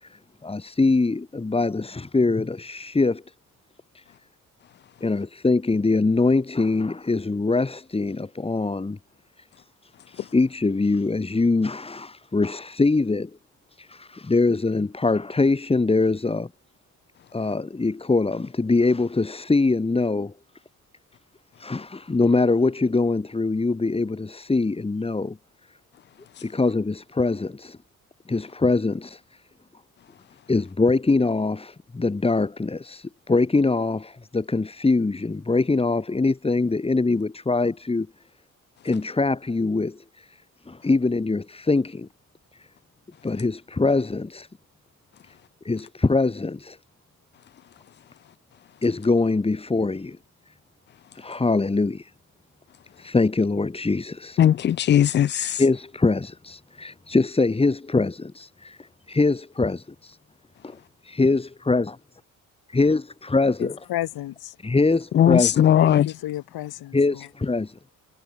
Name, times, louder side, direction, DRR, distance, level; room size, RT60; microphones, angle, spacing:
voice 1, 0.0-3.2 3.9-4.0 5.0-9.0 9.6-13.3 13.7-16.5 17.3-20.3 21.6-25.4 26.4-27.8 28.3-29.2 30.5-38.1 38.8-40.4 40.7-42.1 42.6-42.7 43.2-44.5 45.3-45.4 45.6-46.8 48.8-50.2 51.1-52.1 53.0-54.4 55.6-60.2 60.6-60.7 61.1-62.0 62.7-63.0 63.3-63.8 64.6-65.7 66.9-67.9, left 3 dB, 15° left, 5.9 m, -23 dB
voice 2, 54.4-55.6 65.1-66.1, left 10 dB, 30° left, 0.4 m, -18 dB
voice 3, 63.6-64.5 65.7-67.3, left 14 dB, 85° left, 7.7 m, -32 dB
cardioid pair, 155°, 36 cm